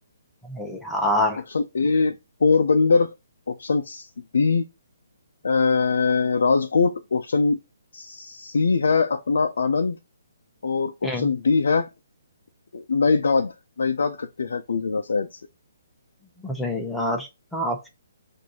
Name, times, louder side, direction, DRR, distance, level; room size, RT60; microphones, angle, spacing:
voice 1, 0.5-1.4 11.0-11.3 16.4-17.9, left 1 dB, 5° left, 0.7 m, -26 dB
voice 2, 1.5-3.1 3.5-4.6 5.4-7.6 7.9-10.0 10.6-11.9 12.7-15.4, left 4 dB, 80° left, 0.5 m, -22 dB
6.1 x 2.6 x 2.8 m
hypercardioid pair, 160°, 0 cm